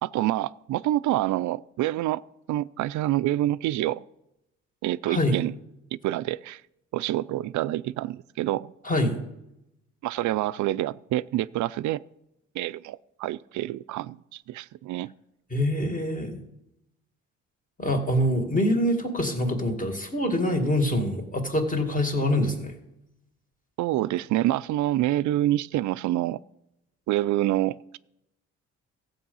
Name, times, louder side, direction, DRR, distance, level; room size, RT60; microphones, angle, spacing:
voice 1, 0.0-2.2 2.5-4.0 4.8-5.5 5.9-6.6 6.9-8.7 10.0-12.0 12.5-15.1 23.8-26.4 27.1-28.0, right 14 dB, 75° right, 17 dB, 0.4 m, -27 dB
voice 2, 5.1-5.4 8.8-9.1 15.5-16.4 17.8-22.7, left 1 dB, 25° left, 4 dB, 2.3 m, -25 dB
14.5 x 8.1 x 5.5 m, 0.87 s
cardioid pair, 90°, 30 cm